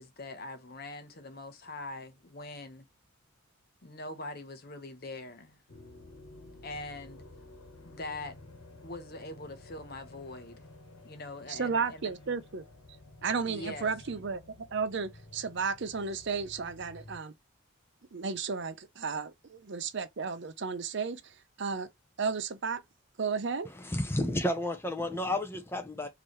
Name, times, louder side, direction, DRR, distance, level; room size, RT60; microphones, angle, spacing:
voice 1, 0.0-2.9 3.8-5.6 6.6-7.2 7.8-8.4 8.8-10.7 11.0-12.1 13.5-13.9, left 2 dB, 45° left, 0.9 m, -43 dB
sound 1, 5.7-17.2, left 2 dB, 85° left, 1.3 m, -52 dB
voice 2, 11.5-12.6 13.2-17.3 18.1-21.2 21.6-21.9 22.2-22.8 23.2-23.7, right 5 dB, 55° right, 0.6 m, -33 dB
voice 3, 23.7-26.1, left 1 dB, 10° left, 0.8 m, -31 dB
4.6 x 2.9 x 3.2 m
head